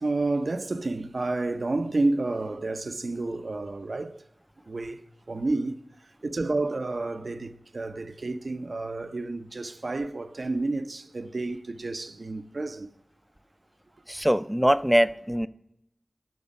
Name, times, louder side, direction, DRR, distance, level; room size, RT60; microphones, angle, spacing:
voice 1, 0.0-4.2 4.7-5.0 5.3-12.9, right 2 dB, 65° right, 0.6 m, -30 dB
voice 2, 14.1-15.5, equal, 5° right, 0.4 m, -22 dB
12.5 x 6.1 x 5.3 m
wide cardioid pair, 55°, 0 cm